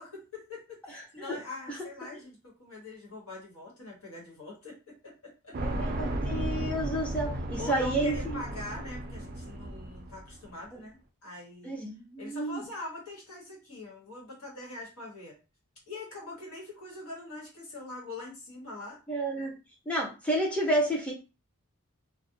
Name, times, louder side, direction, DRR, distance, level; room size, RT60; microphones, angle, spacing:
voice 1, 0.0-5.6 7.6-11.7 12.2-15.4 15.9-19.0, left 2 dB, 85° left, -2 dB, 1.2 m, -43 dB
sound 1, 5.5-10.5, right 1 dB, 40° right, 0.4 m, -34 dB
voice 2, 5.6-8.4 11.6-12.6 19.1-19.5 19.9-21.1, right 1 dB, 5° left, -2 dB, 0.6 m, -30 dB
2.4 x 2.1 x 2.6 m, 0.31 s
head